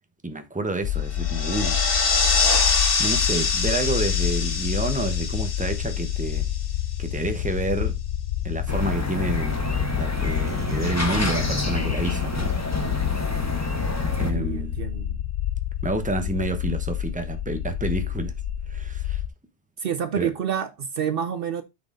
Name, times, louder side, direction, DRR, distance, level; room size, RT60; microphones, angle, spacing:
voice 1, 0.2-1.8 3.0-6.5 7.0-7.9 8.4-9.6 9.9-12.5 14.2-14.8 15.8-18.3 18.7-19.2 20.2-20.3, right 2 dB, 10° right, 1.0 m, -29 dB
sound 1, 0.8-19.3, left 11 dB, 75° left, 0.9 m, -28 dB
sound 2, 1.1-6.9, left 4 dB, 60° left, 1.3 m, -25 dB
sound 3, 8.7-14.3, left 1 dB, 15° left, 1.2 m, -28 dB
voice 2, 14.3-15.2 19.8-21.6, right 8 dB, 65° right, 0.8 m, -28 dB
9.7 x 4.1 x 3.8 m
omnidirectional pair, 1.1 m